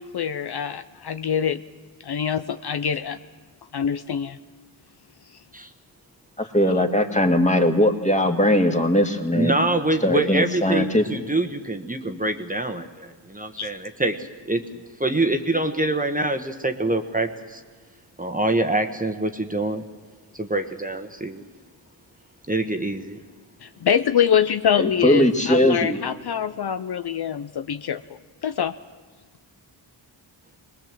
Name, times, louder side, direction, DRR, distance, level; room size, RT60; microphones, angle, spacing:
voice 1, 0.0-1.6 2.0-3.2 3.7-4.4 6.7-6.8 13.6-13.7 23.6-28.0 28.4-28.7, left 8 dB, 60° left, 11 dB, 0.6 m, -24 dB
voice 2, 6.4-9.5 10.0-11.0 24.8-26.0, left 1 dB, 15° left, 4 dB, 2.0 m, -20 dB
voice 3, 9.3-14.6 15.0-17.6 18.2-19.8 20.3-21.5 22.5-23.2, right 2 dB, 20° right, 6 dB, 1.3 m, -25 dB
22.0 x 19.5 x 7.5 m, 1.5 s
cardioid pair, 65°, 45 cm